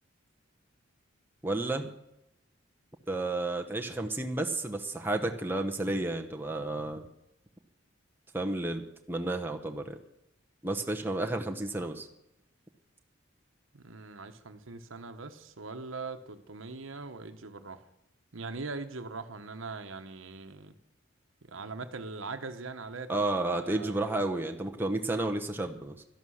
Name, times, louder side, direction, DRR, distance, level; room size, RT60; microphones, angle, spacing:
voice 1, 1.4-1.9 3.1-7.0 8.3-10.0 10.6-12.1 23.1-26.0, right 2 dB, 10° right, 3 dB, 0.9 m, -31 dB
voice 2, 13.7-17.8 18.3-20.7 21.4-24.0, right 3 dB, 85° right, 7 dB, 1.1 m, -41 dB
12.5 x 11.5 x 6.4 m, 0.84 s
head